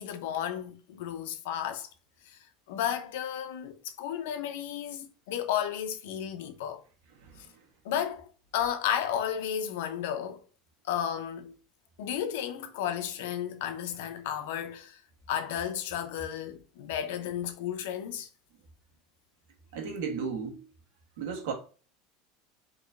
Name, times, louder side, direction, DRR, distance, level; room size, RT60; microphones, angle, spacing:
voice 1, 0.0-1.9 2.3-2.4 2.7-6.8 7.8-8.3 8.5-10.4 10.8-11.5 12.0-15.0 15.3-18.3, left 9 dB, 90° left, 0.7 m, -33 dB
voice 2, 19.7-20.6 21.2-21.5, right 5 dB, 85° right, 1.5 m, -34 dB
4.8 x 3.0 x 2.5 m
cardioid pair, 175°, 0 cm